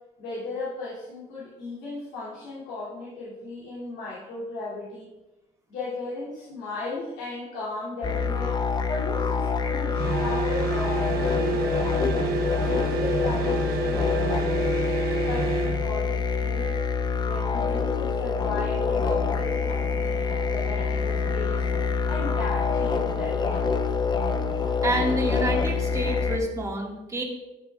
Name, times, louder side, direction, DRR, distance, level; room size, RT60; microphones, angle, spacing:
voice 1, 0.2-5.1 5.7-8.6 8.9-14.7 15.2-16.7 17.3-21.6 22.1-23.9, left 3 dB, 90° left, -10 dB, 2.7 m, -36 dB
sound 1, 8.0-26.4, left 5 dB, 25° left, 0.6 m, -26 dB
sound 2, 9.9-15.9, right 6 dB, 70° right, 0.9 m, -29 dB
sound 3, 18.8-26.2, left 2 dB, 55° left, 2.7 m, -43 dB
voice 2, 24.8-27.2, right 1 dB, 20° right, 0 dB, 1.7 m, -28 dB
12.5 x 6.5 x 2.4 m, 1.1 s
cardioid pair, 110°, 17 cm